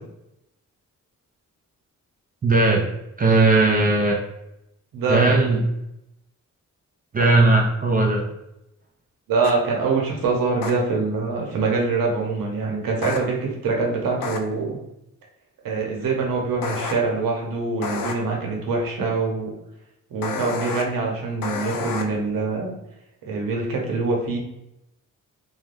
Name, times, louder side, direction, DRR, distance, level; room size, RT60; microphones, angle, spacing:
voice 1, 2.4-2.9 3.2-4.2 5.1-5.6 7.1-8.2, right 2 dB, 25° right, -1 dB, 0.4 m, -18 dB
voice 2, 4.9-5.4 7.2-7.4 9.3-14.8 15.6-19.5 20.1-22.7 23.2-24.4, right 3 dB, 85° right, -1 dB, 0.8 m, -24 dB
sound 1, 9.4-9.5 10.6-10.7 13.0-13.2 14.2-14.4 16.6-16.9 17.8-18.1 20.2-20.8 21.4-22.0, left 5 dB, 80° left, 0.5 m, -29 dB
2.5 x 2.2 x 3.2 m, 0.87 s
wide cardioid pair, 125°, 33 cm